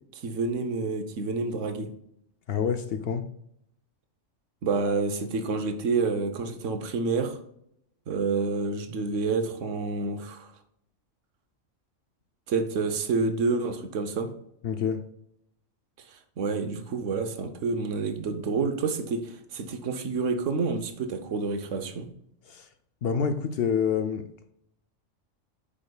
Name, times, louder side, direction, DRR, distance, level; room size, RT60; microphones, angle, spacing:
voice 1, 0.1-1.9 4.6-7.4 8.1-10.5 12.5-14.3 16.1-22.1, right 4 dB, 75° right, 1.2 m, -28 dB
voice 2, 2.5-3.3 14.6-15.0 22.5-22.7 23.0-24.5, left 7 dB, 65° left, 0.7 m, -27 dB
8.2 x 5.0 x 2.3 m
omnidirectional pair, 1.3 m